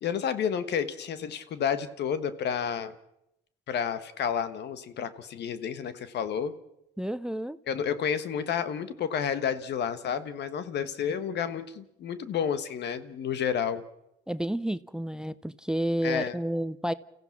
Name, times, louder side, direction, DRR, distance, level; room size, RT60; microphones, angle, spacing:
voice 1, 0.0-2.9 3.7-6.5 7.7-13.8 16.0-16.4, left 8 dB, 65° left, 1.4 m, -30 dB
voice 2, 7.0-7.6 14.3-16.9, right 1 dB, 5° right, 0.7 m, -30 dB
29.5 x 15.5 x 5.9 m
supercardioid pair, 75°, 19 cm